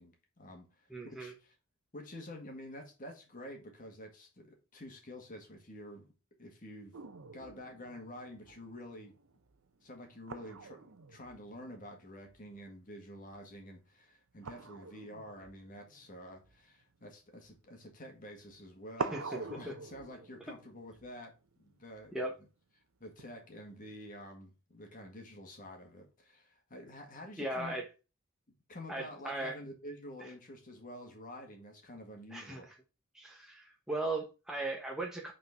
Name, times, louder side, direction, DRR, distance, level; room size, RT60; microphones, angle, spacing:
voice 1, 0.0-1.6 1.9-6.1 6.4-6.9 7.3-9.2 9.8-21.3 21.6-22.2 23.0-27.8 28.7-32.7, left 1 dB, 40° left, 2 dB, 1.8 m, -49 dB
voice 2, 0.9-1.3 19.1-19.2 22.1-22.3 27.4-27.9 28.9-29.6 30.2-30.3 32.3-32.8 33.1-35.3, right 2 dB, ahead, -1 dB, 1.0 m, -37 dB
sound 1, 6.9-12.8 13.1-13.5 14.4-17.7 18.5-18.6 19.0-22.2 23.2-24.2, right 4 dB, 75° right, 0.7 m, -46 dB
6.1 x 4.3 x 5.8 m, 0.31 s
head